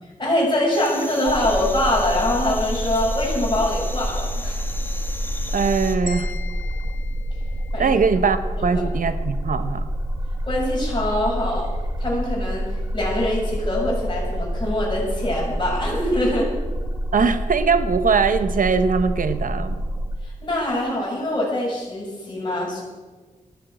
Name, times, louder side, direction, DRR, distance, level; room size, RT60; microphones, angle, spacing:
voice 1, 0.2-4.6 7.7-7.9 8.6-8.7 10.4-11.7 12.0-16.5 20.2-22.8, left 1 dB, 35° left, -4 dB, 6.9 m, -24 dB
sound 1, 0.7-6.0, left 2 dB, 15° left, 1.5 m, -36 dB
sound 2, 1.3-20.2, equal, 25° right, 1.5 m, -27 dB
voice 2, 5.5-6.3 7.8-9.9 17.1-19.7, right 5 dB, 75° right, 10 dB, 1.0 m, -21 dB
sound 3, 6.1-8.2, left 4 dB, 75° left, 3.8 m, -40 dB
15.0 x 10.5 x 9.0 m, 1.3 s
wide cardioid pair, 140°, 14 cm